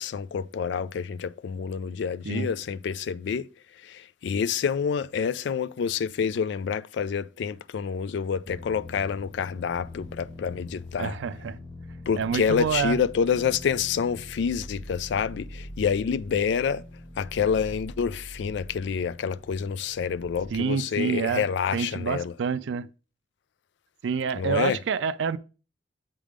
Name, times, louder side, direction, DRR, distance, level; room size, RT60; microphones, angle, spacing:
voice 1, 0.0-3.5 3.8-11.2 12.1-16.8 17.2-22.3 24.3-24.8, left 6 dB, 65° left, 0.3 m, -28 dB
sound 1, 8.4-20.5, left 1 dB, 25° left, 0.7 m, -43 dB
voice 2, 11.0-11.6 12.2-13.0 20.5-21.5 21.7-22.9 24.0-25.4, right 6 dB, 75° right, 0.4 m, -27 dB
7.4 x 3.4 x 5.0 m
head